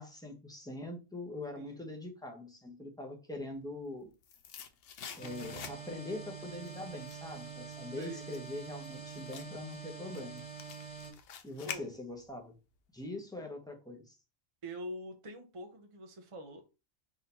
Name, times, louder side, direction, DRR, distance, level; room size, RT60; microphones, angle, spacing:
voice 1, 0.0-4.1 5.2-10.4 11.4-12.5 12.9-14.2, left 2 dB, 5° left, 0.7 m, -43 dB
voice 2, 1.6-1.9 8.0-8.3 11.7-11.8 14.6-16.6, equal, 40° right, 0.5 m, -45 dB
sound 1, 3.7-6.1 6.5-12.4 12.7-12.8, left 7 dB, 60° left, 0.7 m, -48 dB
sound 2, 5.2-11.1, right 5 dB, 20° left, 1.5 m, -46 dB
3.7 x 2.7 x 4.2 m
omnidirectional pair, 1.4 m